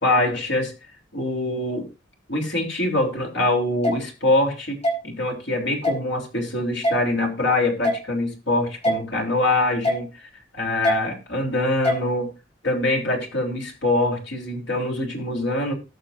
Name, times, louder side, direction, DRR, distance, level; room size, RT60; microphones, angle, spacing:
voice 1, 0.0-0.7 1.1-1.9 2.3-12.3 12.6-15.7, left 2 dB, 70° left, 2 dB, 3.5 m, -24 dB
sound 1, 3.8-4.0 4.8-5.0 5.8-6.0 6.8-7.0 7.8-8.0 8.8-9.0 9.8-10.0 10.8-11.0 11.8-12.0, equal, 35° left, 3.8 m, -21 dB
19.0 x 6.6 x 2.6 m, 0.28 s
head